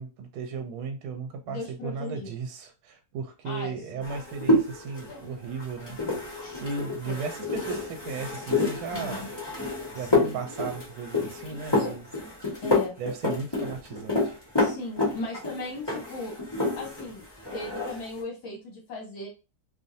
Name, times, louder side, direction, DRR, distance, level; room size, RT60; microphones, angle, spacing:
voice 1, 0.0-6.0 6.6-9.3 9.9-12.1 13.0-14.3, right 5 dB, 75° right, 1.4 m, -35 dB
voice 2, 1.5-2.3 3.4-4.1 5.9-6.1 7.1-7.2 8.9-9.3 9.9-10.3 11.8-11.9 12.6-13.0 14.6-16.4 16.7-17.2 17.5-19.3, left 2 dB, 65° left, 1.7 m, -37 dB
sound 1, 4.0-17.1 17.4-18.1, left 2 dB, 15° left, 1.1 m, -28 dB
3.5 x 2.6 x 2.6 m
omnidirectional pair, 2.3 m